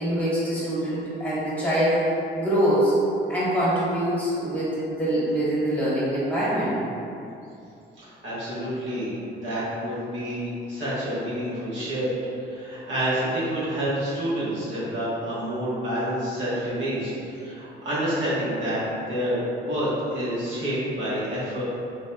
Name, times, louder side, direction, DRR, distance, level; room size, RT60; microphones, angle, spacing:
voice 1, 0.0-2.0 2.3-2.9 3.3-6.8, right 1 dB, 10° left, -10 dB, 1.2 m, -24 dB
voice 2, 8.0-9.1 9.4-12.1 12.4-18.8 19.1-21.6, equal, 70° right, -10 dB, 1.3 m, -28 dB
4.0 x 2.6 x 2.2 m, 2.7 s
cardioid pair, 90°, 20 cm